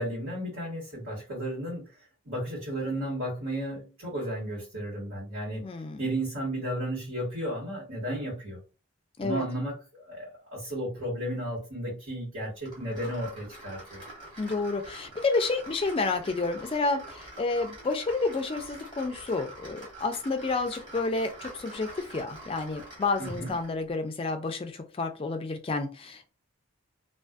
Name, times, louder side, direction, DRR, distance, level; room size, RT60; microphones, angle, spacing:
voice 1, 0.0-1.8 2.2-5.7 6.0-8.6 9.2-14.0 23.2-23.5, right 1 dB, 80° right, 1.5 m, -33 dB
voice 2, 5.6-6.0 9.2-9.4 14.4-26.3, left 3 dB, 25° left, 0.3 m, -30 dB
sound 1, 12.6-23.8, right 1 dB, 20° right, 1.1 m, -46 dB
2.5 x 2.4 x 2.3 m
head